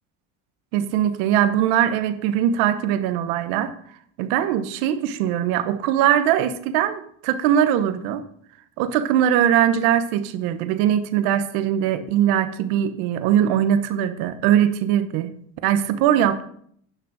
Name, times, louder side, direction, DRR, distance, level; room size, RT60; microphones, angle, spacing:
voice 1, 0.7-3.7 4.2-8.2 8.8-15.3 15.6-16.4, right 10 dB, 90° right, 11 dB, 1.1 m, -21 dB
10.0 x 6.1 x 6.2 m, 0.64 s
cardioid pair, 115°, 31 cm